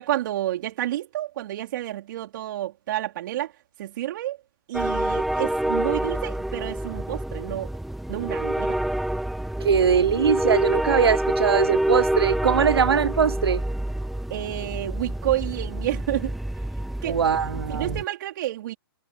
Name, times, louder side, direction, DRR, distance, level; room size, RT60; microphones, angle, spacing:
voice 1, 0.0-3.5 3.8-4.4 4.7-7.7 8.1-8.8 14.3-16.3 17.0-17.2 17.7-18.8, right 13 dB, 55° right, 3.3 m, -29 dB
sound 1, 4.7-18.0, right 1 dB, ahead, 0.3 m, -27 dB
voice 2, 9.6-13.6 17.0-18.0, right 7 dB, 85° right, 0.8 m, -21 dB
hypercardioid pair, 135°, 13 cm